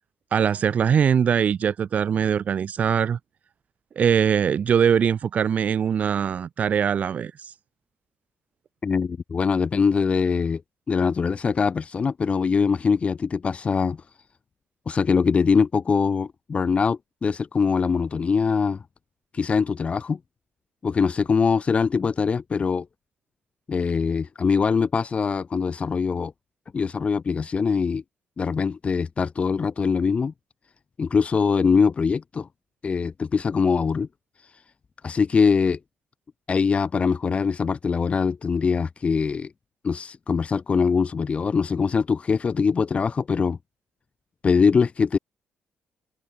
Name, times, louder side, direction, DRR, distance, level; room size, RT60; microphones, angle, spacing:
voice 1, 0.3-3.2 3.9-7.5, right 7 dB, 50° right, 6.7 m, -22 dB
voice 2, 8.8-10.6 10.9-14.0 14.9-18.8 19.3-20.2 20.8-22.9 23.7-26.3 26.7-28.0 28.4-30.3 31.0-32.5 32.8-34.1 35.0-35.8 36.5-39.5 39.8-43.6 44.4-45.2, left 5 dB, 40° left, 7.6 m, -22 dB
figure-of-eight pair, 40°, 3 cm